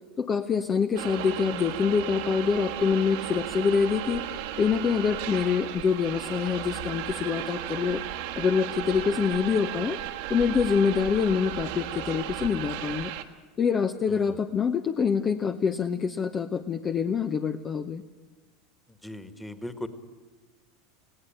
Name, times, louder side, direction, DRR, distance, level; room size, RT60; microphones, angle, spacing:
voice 1, 0.2-8.0 8.3-10.0 10.3-13.1 13.6-18.0, left 6 dB, 30° left, 8 dB, 0.8 m, -26 dB
sound 1, 1.0-13.2, right 11 dB, 60° right, 1.5 m, -35 dB
voice 2, 19.0-19.9, left 1 dB, 5° left, 11 dB, 1.8 m, -38 dB
20.5 x 16.5 x 8.9 m, 1.3 s
figure-of-eight pair, 80°, 0 cm